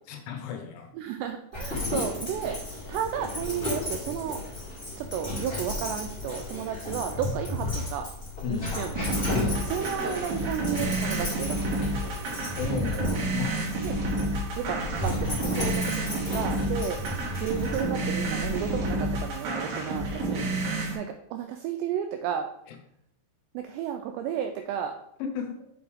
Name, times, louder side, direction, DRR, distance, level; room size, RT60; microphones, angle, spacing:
voice 1, 0.1-0.9 8.4-8.8 9.3-9.7 12.5-13.7 16.6-16.8 19.7-20.6 22.7-22.8 25.2-25.7, left 6 dB, 85° left, 3 dB, 3.5 m, -35 dB
voice 2, 0.9-2.6 2.9-4.4 5.0-8.1 8.5-8.9 9.7-11.9 13.8-14.0 14.6-20.5 21.0-22.5 23.5-25.0, right 9 dB, 90° right, 6 dB, 2.4 m, -33 dB
Dog, 1.5-18.7, left 2 dB, 20° left, 1.8 m, -34 dB
sound 1, 9.0-21.0, right 2 dB, 60° right, 2.6 m, -30 dB
7.7 x 5.1 x 3.5 m, 0.75 s
omnidirectional pair, 5.4 m